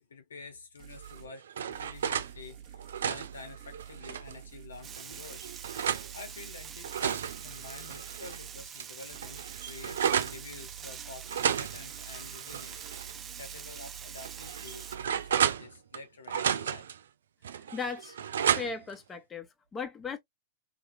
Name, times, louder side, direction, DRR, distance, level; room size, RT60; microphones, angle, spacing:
voice 1, 0.0-5.5 6.1-13.1 13.4-16.9, left 4 dB, 85° left, 1.0 m, -49 dB
sound 1, 0.8-1.3 1.7-8.7 9.1-15.6, right 9 dB, 50° right, 1.3 m, -49 dB
sound 2, 1.0-2.3 2.7-4.4 5.0-6.1 6.6-8.4 8.8-8.9 9.1-10.4 11.3-13.1 13.4-13.6 14.2-16.0 16.3-17.0 17.4-18.9, right 8 dB, 75° right, 0.4 m, -32 dB
Frying (food), 4.8-15.0, right 7 dB, 25° right, 0.6 m, -45 dB
voice 2, 17.6-18.2 18.4-20.2, left 5 dB, 20° left, 1.1 m, -37 dB
3.1 x 2.9 x 2.6 m
hypercardioid pair, 100°, 0 cm